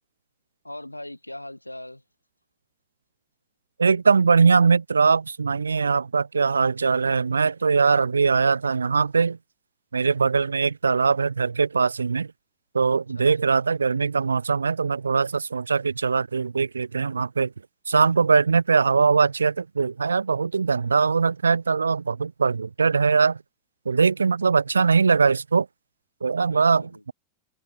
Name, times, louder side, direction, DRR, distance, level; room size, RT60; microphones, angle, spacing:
voice 1, 0.6-2.0 13.1-13.6 26.4-27.1, left 1 dB, 85° left, 7.6 m, -40 dB
voice 2, 3.8-9.4 9.9-12.3 12.7-17.5 17.9-23.4 23.9-25.7 26.2-26.9, right 5 dB, 75° right, 0.3 m, -21 dB
figure-of-eight pair, 90°, 0 cm